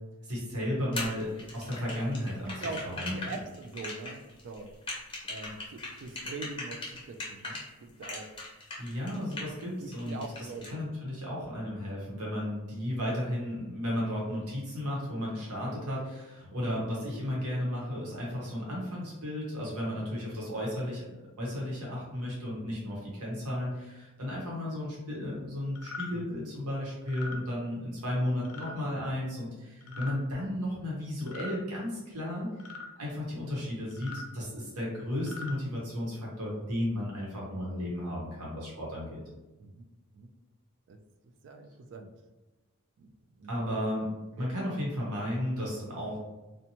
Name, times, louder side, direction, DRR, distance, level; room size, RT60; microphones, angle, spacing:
voice 1, 0.2-3.3 8.8-32.5 33.0-39.2 43.5-44.1 44.4-46.2, left 1 dB, 80° right, -5 dB, 0.9 m, -34 dB
sound 1, 0.9-7.6 8.0-9.6 9.9-10.7, left 2 dB, 25° left, 0.7 m, -39 dB
voice 2, 2.6-4.7 5.3-8.3 9.4-9.5 9.8-10.8 26.1-26.3 29.8-30.1 39.6-39.8 40.1-40.3 40.9-41.0 41.4-42.1 43.0-43.1 43.4-43.6 44.4-44.5, right 3 dB, 55° right, 7 dB, 0.3 m, -42 dB
sound 2, 25.7-26.1 27.0-27.4 28.4-28.7 29.8-30.1 31.2-31.6 32.6-32.9 33.9-34.3 35.1-35.5, left 3 dB, 70° left, 0.5 m, -41 dB
2.8 x 2.1 x 2.8 m, 1.1 s
head